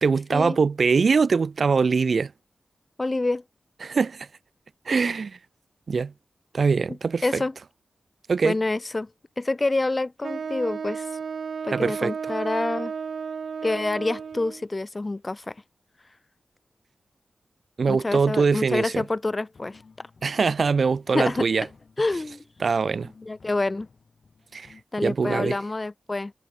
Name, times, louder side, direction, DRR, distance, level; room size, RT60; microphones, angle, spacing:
voice 1, 0.0-2.3 3.8-4.3 4.9-5.4 5.9-6.1 6.5-7.4 8.3-8.6 11.7-12.1 17.8-19.0 20.2-21.7 22.6-23.1 24.5-24.7 25.0-25.6, right 5 dB, 55° right, 0.5 m, -23 dB
voice 2, 3.0-3.4 7.2-7.5 8.4-9.1 9.4-11.1 11.6-12.9 13.6-15.6 17.9-20.1 21.1-21.7 22.0-22.4 23.2-23.9 24.9-26.3, left 2 dB, 25° left, 0.3 m, -27 dB
Wind instrument woodwind instrument, 10.2-14.7, right 6 dB, 80° right, 1.3 m, -33 dB
sound 1, 18.7-24.8, left 4 dB, 50° left, 3.9 m, -55 dB
wide cardioid pair, 170°, 0 cm